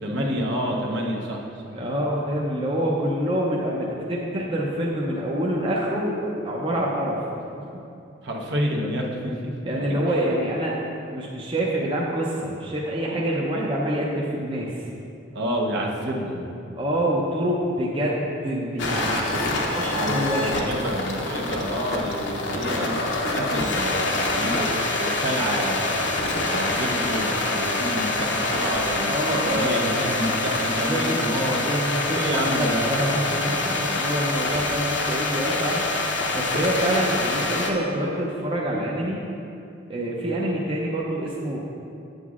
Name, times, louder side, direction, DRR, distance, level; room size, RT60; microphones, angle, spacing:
voice 1, 0.0-1.8 8.2-9.5 10.1-10.3 15.3-16.5 19.9-26.0 26.5-31.7 32.1-32.9 33.6-33.7, equal, 60° right, -1 dB, 0.8 m, -29 dB
voice 2, 1.7-7.2 9.6-10.8 11.1-14.7 16.7-20.7 29.1-30.2 30.7-39.3 39.9-41.6, right 1 dB, 25° right, -4 dB, 0.6 m, -26 dB
sound 1, 18.8-37.7, left 2 dB, 60° left, 0.7 m, -26 dB
8.2 x 7.8 x 2.4 m, 2.6 s
head